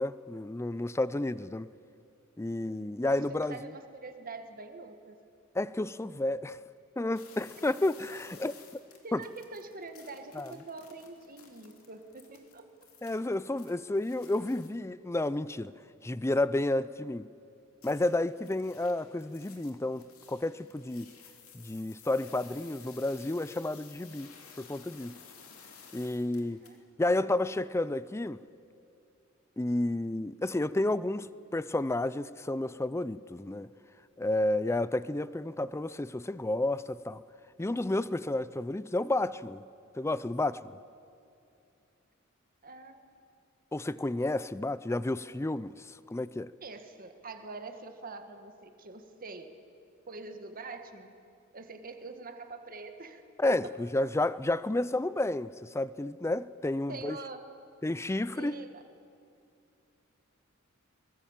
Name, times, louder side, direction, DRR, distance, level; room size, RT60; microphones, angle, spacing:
voice 1, 0.0-1.7 2.4-3.6 5.5-6.6 7.0-8.5 9.1-9.2 10.3-10.5 13.0-15.7 16.0-17.3 17.8-21.1 21.5-24.3 24.6-25.2 25.9-26.6 27.0-28.4 29.6-33.7 34.2-37.2 37.6-39.6 40.0-40.8 43.7-46.5 53.4-57.2 57.8-58.6, left 2 dB, 15° left, 0.4 m, -31 dB
voice 2, 3.1-5.2 7.6-7.7 9.0-12.7 26.4-26.8 42.6-43.1 46.6-49.5 50.1-51.1 51.5-53.7 56.9-57.5 58.3-58.8, right 3 dB, 40° right, 1.7 m, -45 dB
sound 1, 7.1-14.7 17.8-26.8, left 6 dB, 85° left, 2.8 m, -55 dB
23.0 x 20.5 x 7.4 m
head